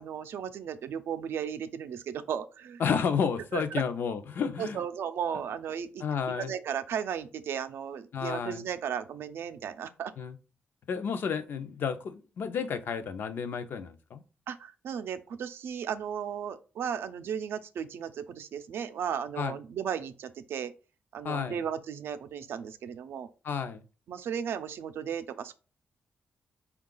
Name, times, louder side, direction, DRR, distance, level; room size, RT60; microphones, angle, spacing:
voice 1, 0.0-2.8 3.5-3.8 4.6-6.0 6.4-10.1 14.5-20.7 21.1-23.3 24.1-25.5, right 8 dB, 85° right, 0.4 m, -35 dB
voice 2, 2.8-4.8 6.0-6.5 8.1-8.6 10.2-10.4 10.9-14.2 19.4-19.6 21.2-21.6 23.4-23.8, left 6 dB, 60° left, 0.5 m, -31 dB
4.7 x 2.3 x 3.7 m
wide cardioid pair, 155°, 4 cm